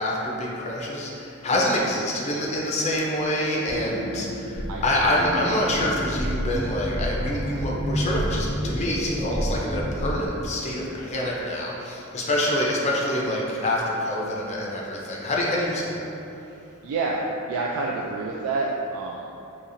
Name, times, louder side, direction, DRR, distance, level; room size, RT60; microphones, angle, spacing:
voice 1, 0.0-16.0, left 1 dB, 30° left, -3 dB, 0.4 m, -26 dB
sound 1, 3.2-10.3, equal, 30° right, 0.9 m, -29 dB
voice 2, 16.8-17.2 17.5-19.3, right 3 dB, 85° right, -1 dB, 0.3 m, -28 dB
4.1 x 2.8 x 2.5 m, 2.8 s
head